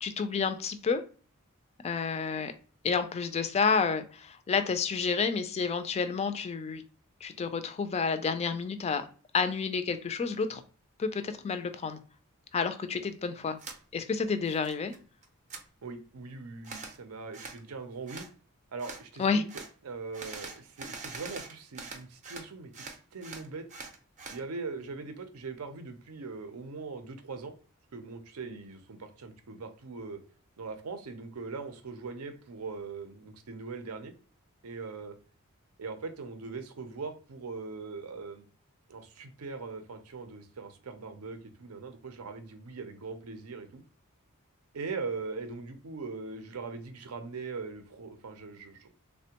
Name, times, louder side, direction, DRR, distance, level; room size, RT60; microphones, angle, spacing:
voice 1, 0.0-1.0 1.8-2.5 2.8-6.8 7.2-9.1 9.3-10.6 11.0-12.0 12.5-13.6 13.9-14.9 19.2-19.4, left 5 dB, 30° left, 9 dB, 0.3 m, -30 dB
sound 1, 13.6-13.8 14.2-15.0 15.2-15.6 16.6-17.0 17.3-17.6 18.1-18.3 18.8-19.0 19.5-19.7 20.1-22.5 22.7-24.4, right 4 dB, 35° right, 0.5 m, -43 dB
voice 2, 15.8-18.2 18.7-19.5 19.8-22.8 23.1-23.6 24.3-27.5 27.9-30.2 30.6-34.1 34.6-35.1 35.8-38.4 38.9-43.8 44.7-48.9, right 4 dB, 80° right, 8 dB, 0.5 m, -41 dB
3.3 x 2.1 x 2.8 m, 0.39 s
head